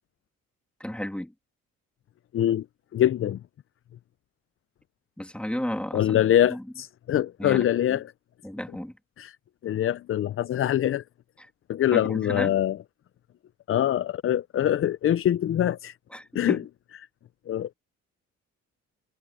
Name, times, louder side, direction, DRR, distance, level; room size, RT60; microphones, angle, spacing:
voice 1, 0.8-1.3 5.2-6.2 6.5-6.6 7.4-8.0 8.4-8.9 11.9-12.6 16.1-16.6, left 1 dB, 5° left, 2.7 m, -33 dB
voice 2, 2.3-2.7 2.9-3.4 5.9-8.1 9.2-9.4 9.6-11.0 11.7-12.8 13.7-16.0 16.3-16.6 17.5-17.7, left 11 dB, 45° left, 0.5 m, -24 dB
cardioid pair, 90°, 30 cm